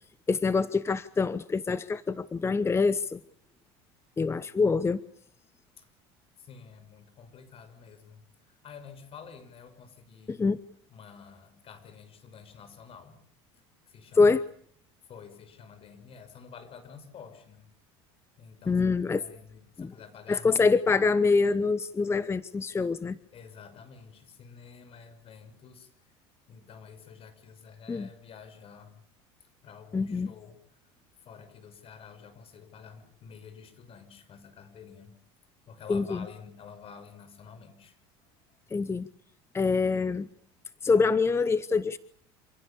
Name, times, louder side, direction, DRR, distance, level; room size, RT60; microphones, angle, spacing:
voice 1, 0.3-3.2 4.2-5.0 10.3-10.6 14.2-14.4 18.7-19.2 19.8-19.9 20.3-23.2 27.9-28.1 29.9-30.3 35.9-36.3 38.7-39.1 39.5-40.3 40.8-42.0, left 4 dB, 20° left, 16 dB, 1.0 m, -25 dB
voice 2, 6.4-8.2 8.6-10.5 10.9-13.2 13.5-14.3 15.1-17.7 18.4-18.9 19.2-20.8 23.3-25.9 26.5-28.9 29.6-30.6 31.2-35.1 35.7-38.0, left 6 dB, 45° left, 10 dB, 6.2 m, -49 dB
27.5 x 16.5 x 8.6 m, 0.65 s
supercardioid pair, 95°, 13 cm